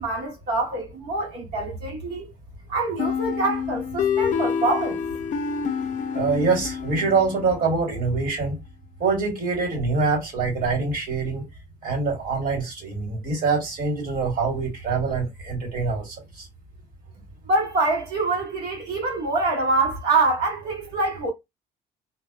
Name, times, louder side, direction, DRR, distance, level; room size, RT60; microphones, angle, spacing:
voice 1, 0.0-2.3 2.7-5.0 17.5-21.3, right 3 dB, 75° right, 1.2 m, -25 dB
sound 1, 3.0-7.7, left 7 dB, 50° left, 0.5 m, -27 dB
voice 2, 6.1-8.6 9.0-11.4 11.8-16.5, right 4 dB, 55° right, 1.7 m, -24 dB
2.5 x 2.1 x 2.3 m
cardioid pair, 110°, 17 cm